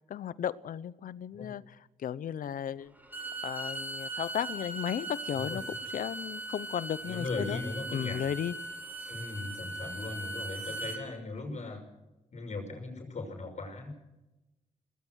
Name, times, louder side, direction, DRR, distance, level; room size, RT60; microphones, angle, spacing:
voice 1, 0.1-2.9 3.4-7.6 7.9-8.5, left 9 dB, 80° left, 18 dB, 0.8 m, -35 dB
Bowed string instrument, 3.0-11.0, right 2 dB, 10° right, 4.6 m, -39 dB
voice 2, 7.0-8.2 9.1-11.8 12.3-13.9, left 3 dB, 55° left, 4 dB, 6.1 m, -38 dB
23.0 x 19.0 x 6.4 m, 0.99 s
cardioid pair, 75°, 14 cm